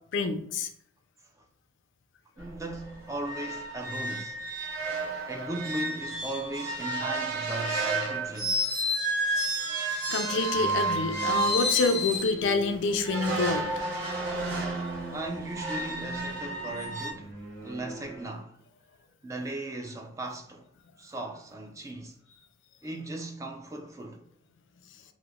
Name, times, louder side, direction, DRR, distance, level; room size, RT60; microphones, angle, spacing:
voice 1, 0.1-0.7 10.1-13.7, left 3 dB, 65° left, 0.4 m, -27 dB
voice 2, 2.4-4.4 5.3-8.7 15.1-18.6 19.2-20.6 21.0-22.2 22.8-24.2, right 2 dB, 15° right, 0.3 m, -37 dB
sound 1, 2.4-2.5 2.8-2.9 3.2-12.4 13.0-17.1, right 1 dB, 70° right, 0.9 m, -31 dB
sound 2, 10.5-18.3, right 3 dB, 55° right, 1.4 m, -41 dB
3.0 x 2.1 x 3.5 m
head